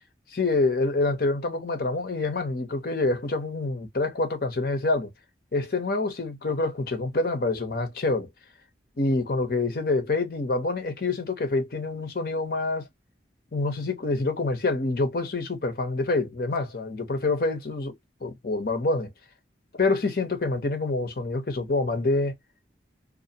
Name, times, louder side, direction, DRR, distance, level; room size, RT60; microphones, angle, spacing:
voice 1, 0.3-5.1 5.5-8.3 9.0-12.9 13.5-17.9 18.2-19.1 19.8-22.3, left 3 dB, 55° left, 0.7 m, -26 dB
2.4 x 2.1 x 2.7 m
head